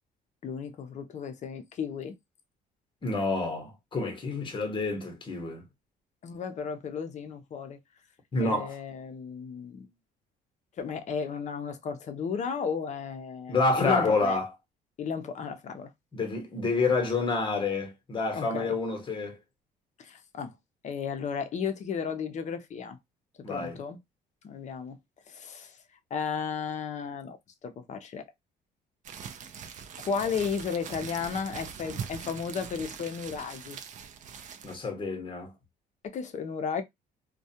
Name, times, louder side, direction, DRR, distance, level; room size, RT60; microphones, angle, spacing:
voice 1, 0.4-2.2 6.2-7.8 8.4-9.9 10.8-14.4 15.0-15.9 18.3-18.8 20.0-20.5 20.8-23.0 23.5-24.0 24.4-25.0 25.3-25.8 26.1-28.2 30.0-33.8 36.0-36.8, left 6 dB, 45° left, 0.6 m, -34 dB
voice 2, 3.0-5.6 8.3-8.7 13.5-14.5 16.1-19.4 23.4-23.8 34.6-35.5, left 3 dB, 30° left, 1.0 m, -28 dB
sound 1, 29.0-34.8, right 7 dB, 45° right, 0.5 m, -42 dB
2.3 x 2.2 x 2.7 m
cardioid pair, 110°, 17 cm